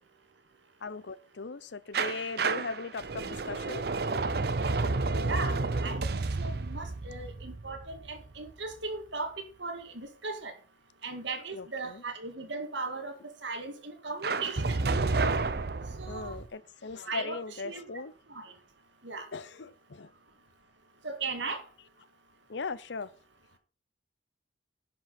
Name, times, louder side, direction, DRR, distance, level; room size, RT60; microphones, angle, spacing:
voice 1, 0.8-3.8 11.5-12.0 16.1-18.1 19.3-20.1 22.5-23.1, left 4 dB, 70° left, 0.6 m, -38 dB
sound 1, 1.9-8.7 14.2-16.5, right 3 dB, 55° right, 0.6 m, -31 dB
voice 2, 5.2-5.6 5.8-6.1 6.4-9.3 9.6-10.5 11.0-14.8 16.0-16.4 17.0-17.8 18.4-18.5 19.0-19.3 21.0-21.6, right 3 dB, 75° right, 2.0 m, -37 dB
10.5 x 5.4 x 5.5 m
head